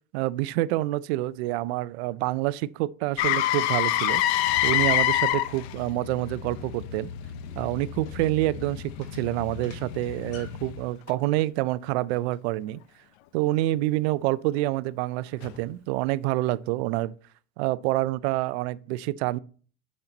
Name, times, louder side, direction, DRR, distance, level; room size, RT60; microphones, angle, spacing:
voice 1, 0.1-7.1 7.6-12.8 13.3-17.1 17.6-19.4, right 17 dB, 85° right, 0.5 m, -27 dB
Motor vehicle (road), 3.2-11.1 15.4-15.6, left 13 dB, 90° left, 0.7 m, -28 dB
sound 1, 6.6-10.7, left 4 dB, 55° left, 2.7 m, -51 dB
10.0 x 4.4 x 3.9 m
supercardioid pair, 115°, 31 cm